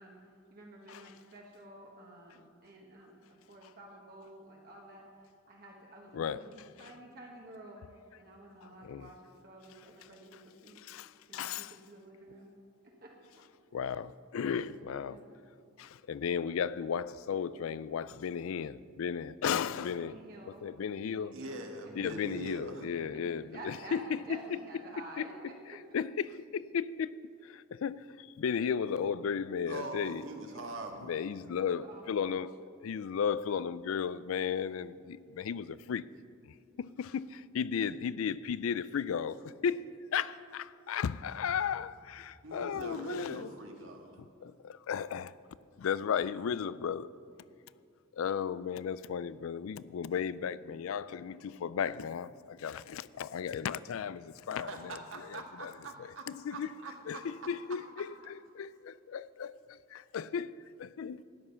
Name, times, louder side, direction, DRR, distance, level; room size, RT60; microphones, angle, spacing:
voice 1, 0.0-10.8 11.3-12.5 12.8-13.4 14.4-15.4 19.6-20.7 21.1-21.6 23.1-26.0 31.8-32.4, right 2 dB, 45° right, 1.3 m, -51 dB
voice 2, 10.8-11.7 13.7-15.2 15.8-20.2 20.6-21.4 22.0-24.4 25.2-25.3 25.9-27.2 27.4-30.3 31.0-32.5 32.8-36.1 36.4-43.5 44.2-45.4 45.8-47.1 48.1-55.7 56.0-56.7 57.1-61.2, left 7 dB, 80° left, 0.4 m, -35 dB
voice 3, 21.3-22.8 29.7-31.2 42.4-44.1 54.5-56.2 56.5-56.9, right 2 dB, 70° right, 1.7 m, -43 dB
13.0 x 9.8 x 5.7 m
head